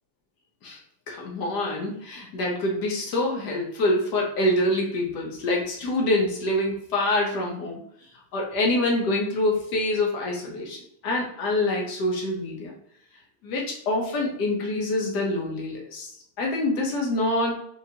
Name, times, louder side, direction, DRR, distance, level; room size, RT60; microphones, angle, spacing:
voice 1, 1.1-7.8 8.3-10.8 11.0-12.7 13.4-16.1 16.4-17.6, left 1 dB, 60° left, -1 dB, 1.2 m, -26 dB
5.8 x 2.5 x 2.8 m, 0.68 s
omnidirectional pair, 2.2 m